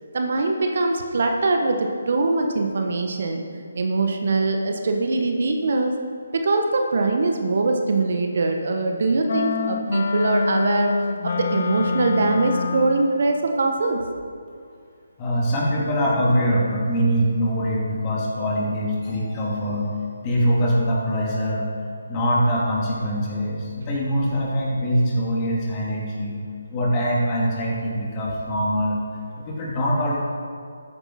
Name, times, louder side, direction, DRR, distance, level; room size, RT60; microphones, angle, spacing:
voice 1, 0.1-5.9 6.3-11.0 11.2-14.0, right 3 dB, 55° right, 3 dB, 1.3 m, -22 dB
sound 1, 9.3-13.1, left 4 dB, 50° left, 0.8 m, -25 dB
voice 2, 15.2-19.9 20.2-21.7 22.1-26.4 26.7-29.0 29.4-30.2, equal, 25° left, -4 dB, 2.9 m, -23 dB
13.5 x 9.7 x 4.4 m, 2.3 s
figure-of-eight pair, 150°, 0 cm